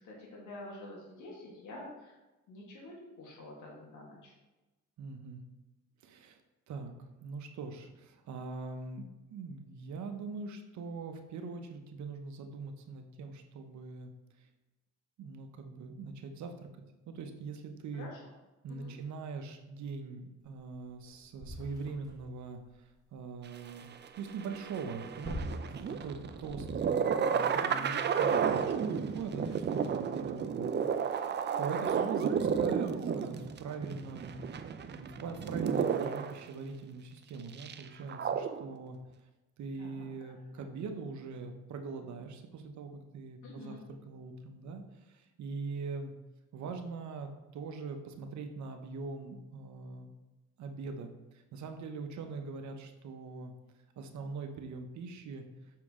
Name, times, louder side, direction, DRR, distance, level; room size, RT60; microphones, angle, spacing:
voice 1, 0.0-2.1 2.5-4.3 18.0-18.2 18.7-18.9 29.3-29.5 32.1-32.2 39.8-40.7 43.4-43.8, left 2 dB, 80° left, -3 dB, 1.8 m, -48 dB
voice 2, 5.0-5.4 6.0-6.4 6.7-9.0 9.3-14.1 15.2-16.7 17.1-18.1 18.6-23.9 24.2-30.9 31.2-34.4 34.9-39.0 39.6-46.1 46.5-50.1 50.6-53.5 54.0-55.4, right 4 dB, 70° right, 6 dB, 0.8 m, -42 dB
sound 1, 20.7-20.8 21.1-22.4 24.7-27.1 27.8-27.9, equal, 10° right, 1.4 m, -44 dB
sound 2, 23.7-36.4 37.5-38.7, right 7 dB, 35° right, 0.4 m, -32 dB
6.2 x 4.5 x 3.7 m, 1.1 s
cardioid pair, 90°, 30 cm